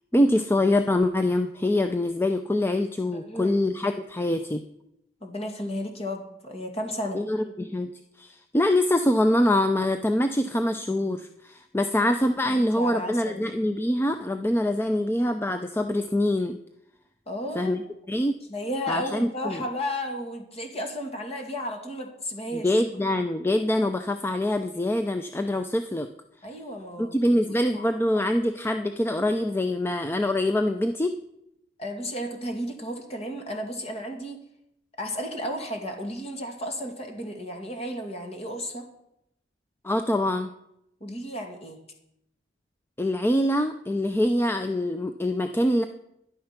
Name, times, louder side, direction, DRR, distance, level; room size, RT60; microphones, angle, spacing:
voice 1, 0.1-4.6 7.1-7.9 8.2-16.6 17.5-17.8 18.1-18.4 18.9-19.6 22.5-26.1 27.0-31.1 39.8-40.5 43.0-45.8, left 1 dB, 15° left, 7 dB, 0.5 m, -24 dB
voice 2, 3.1-3.6 5.2-7.2 12.4-13.4 17.3-17.7 18.1-22.8 26.4-27.2 27.7-27.8 31.8-34.4 35.0-38.9 41.0-41.8, equal, 35° left, 3 dB, 2.3 m, -33 dB
12.0 x 10.5 x 5.9 m, 0.79 s
head